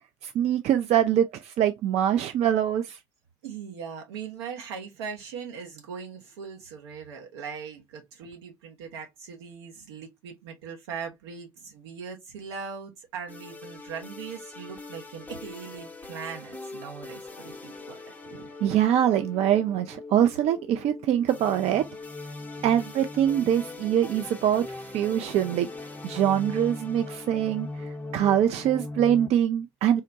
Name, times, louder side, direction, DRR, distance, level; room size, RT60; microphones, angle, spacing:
voice 1, 0.2-3.0 18.3-21.8 22.6-25.7 26.0-27.7 28.1-30.0, right 10 dB, 50° right, 0.4 m, -24 dB
voice 2, 3.4-18.1 22.6-22.9, right 6 dB, 75° right, 0.9 m, -40 dB
sound 1, 13.3-29.3, left 2 dB, 10° left, 0.7 m, -40 dB
3.7 x 2.1 x 2.6 m
hypercardioid pair, 55°, 14 cm